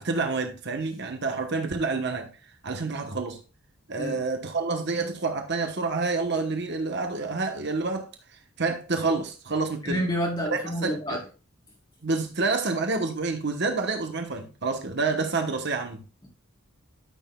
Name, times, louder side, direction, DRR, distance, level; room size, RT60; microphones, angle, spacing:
voice 1, 0.0-2.3 2.6-3.4 3.9-8.1 8.6-10.0 10.5-11.2 12.0-16.0, right 3 dB, 50° right, 1.1 m, -28 dB
voice 2, 9.8-11.2, equal, 20° left, 4.0 m, -28 dB
13.0 x 6.4 x 2.3 m
head